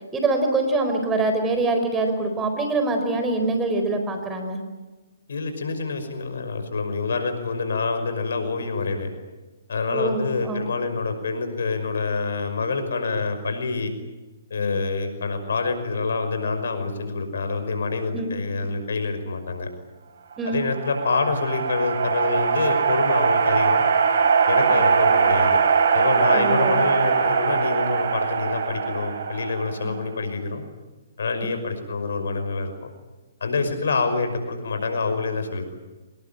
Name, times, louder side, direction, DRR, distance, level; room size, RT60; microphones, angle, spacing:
voice 1, 0.1-4.6 9.9-10.6 18.1-18.3 20.4-20.6 24.7-24.8 26.3-26.8 29.8-29.9, right 2 dB, 15° right, 6 dB, 4.6 m, -24 dB
voice 2, 5.3-9.1 9.7-13.9 14.5-19.7 20.4-23.8 24.5-25.6 25.9-30.6 31.2-32.9 33.4-35.7, left 4 dB, 75° left, 7 dB, 5.8 m, -26 dB
sound 1, 20.5-30.0, right 6 dB, 65° right, 4.1 m, -21 dB
25.5 x 20.5 x 9.0 m, 1.2 s
hypercardioid pair, 135°, 0 cm